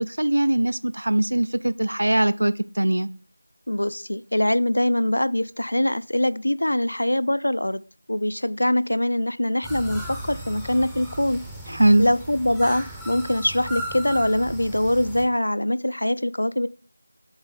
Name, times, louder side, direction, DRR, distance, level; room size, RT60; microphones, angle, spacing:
voice 1, 0.0-3.1 11.7-12.1, right 1 dB, 70° right, 0.4 m, -21 dB
voice 2, 3.7-7.8 8.1-11.4 12.0-16.7, left 1 dB, 75° left, 0.4 m, -23 dB
sound 1, 9.6-15.2, right 1 dB, ahead, 0.5 m, -36 dB
7.8 x 3.4 x 4.0 m
figure-of-eight pair, 170°, 0 cm